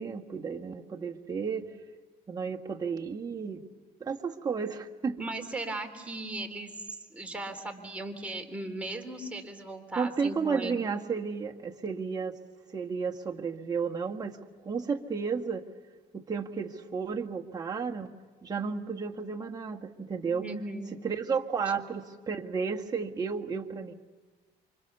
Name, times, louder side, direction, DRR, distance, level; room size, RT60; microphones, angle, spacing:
voice 1, 0.0-1.7 2.3-3.6 4.0-5.2 9.9-12.4 12.7-14.4 14.6-15.6 16.1-18.1 18.4-20.5 21.0-23.9, right 5 dB, 25° right, 1 dB, 1.8 m, -32 dB
voice 2, 5.2-6.7 7.1-10.8 20.3-21.0, right 2 dB, 5° right, 2 dB, 3.4 m, -37 dB
29.0 x 25.5 x 7.0 m, 1.4 s
cardioid pair, 110°, 17 cm